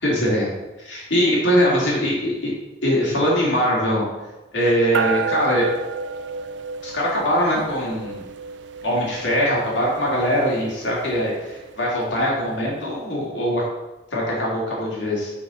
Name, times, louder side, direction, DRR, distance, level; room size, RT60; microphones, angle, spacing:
voice 1, 0.0-0.5 0.8-2.5 2.8-4.0 4.5-5.7 6.8-8.2 8.8-13.6 14.1-15.3, equal, 70° left, -4 dB, 2.6 m, -22 dB
sound 1, 4.9-12.6, right 5 dB, 65° right, 0.5 m, -32 dB
7.0 x 4.6 x 5.7 m, 1.0 s
head